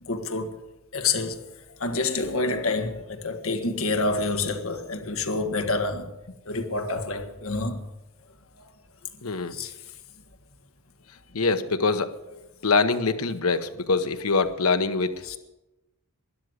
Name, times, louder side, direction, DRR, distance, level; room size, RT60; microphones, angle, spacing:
voice 1, 0.0-0.5 0.9-1.5 1.8-6.1 6.5-7.8 9.5-9.7 15.2-15.4, left 3 dB, 70° left, 1.6 m, -27 dB
voice 2, 9.2-9.6 11.3-12.1 12.6-15.4, left 4 dB, 90° left, 1.0 m, -24 dB
13.0 x 11.0 x 8.1 m
head